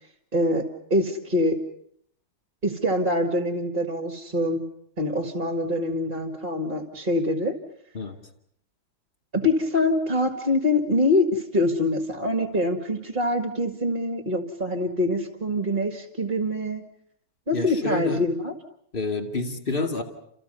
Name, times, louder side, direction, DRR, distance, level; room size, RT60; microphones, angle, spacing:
voice 1, 0.3-1.6 2.6-4.6 5.0-7.5 9.3-16.8 17.5-18.5, left 1 dB, 25° right, 6 dB, 2.0 m, -24 dB
voice 2, 17.5-18.3 18.9-20.0, left 3 dB, 25° left, 5 dB, 2.4 m, -28 dB
30.0 x 28.0 x 5.5 m, 0.67 s
omnidirectional pair, 2.1 m